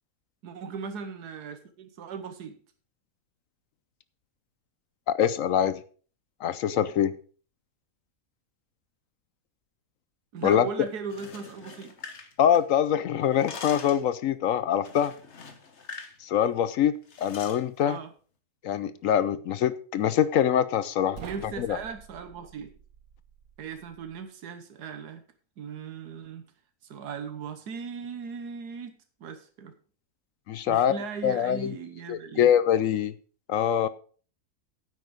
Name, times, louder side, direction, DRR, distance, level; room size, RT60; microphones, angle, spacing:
voice 1, 0.4-2.6 10.3-11.9 17.9-18.1 21.2-22.8 23.6-25.2 25.6-26.4 26.8-29.8 30.7-32.5, right 5 dB, 85° right, 1.6 m, -38 dB
voice 2, 5.1-5.8 6.4-7.1 10.4-10.7 12.4-15.1 16.2-18.0 18.6-21.2 21.6-21.8 30.5-30.9 31.2-31.7 32.1-33.1 33.5-33.9, left 9 dB, 65° left, 0.9 m, -24 dB
sound 1, 11.0-12.9 13.2-14.1 14.9-16.2 16.4-16.6 17.1-17.6, left 5 dB, 45° left, 1.5 m, -43 dB
sound 2, 21.1-24.2, right 6 dB, 65° right, 1.5 m, -48 dB
9.5 x 8.2 x 5.0 m
omnidirectional pair, 1.7 m